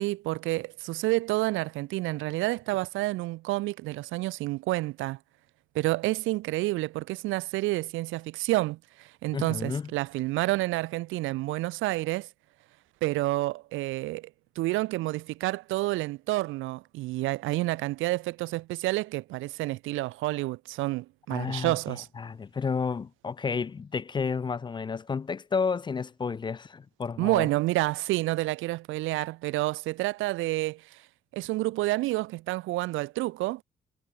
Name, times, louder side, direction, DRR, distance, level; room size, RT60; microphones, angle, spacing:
voice 1, 0.0-5.2 5.7-12.3 13.0-14.3 14.6-22.1 27.2-31.0 31.3-33.6, right 19 dB, 85° right, 0.4 m, -29 dB
voice 2, 9.3-9.9 21.3-27.5, left 5 dB, 25° left, 0.3 m, -31 dB
cardioid pair, 90°, 20 cm